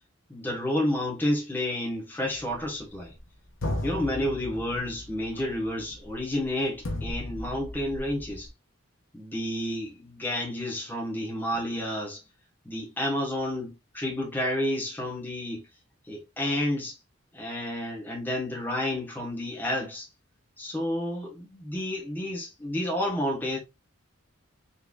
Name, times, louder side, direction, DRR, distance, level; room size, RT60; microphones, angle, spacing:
voice 1, 0.3-3.1 3.8-8.5 9.1-12.2 12.6-15.6 16.1-17.0 17.3-20.1 20.6-23.6, left 1 dB, 10° left, 1.1 m, -30 dB
sound 1, 2.3-3.2 3.6-8.5, left 1 dB, 75° left, 0.9 m, -36 dB
3.9 x 3.2 x 2.3 m
head